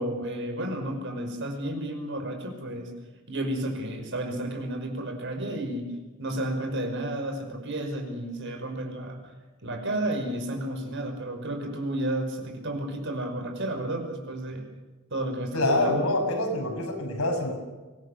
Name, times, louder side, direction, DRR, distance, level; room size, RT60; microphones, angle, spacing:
voice 1, 0.0-2.9 3.3-5.9 6.2-9.2 9.6-14.6 15.1-16.1, right 1 dB, 60° right, 4 dB, 5.6 m, -32 dB
voice 2, 15.5-17.5, left 1 dB, 85° left, 3 dB, 6.6 m, -26 dB
24.5 x 18.5 x 6.8 m, 1.3 s
head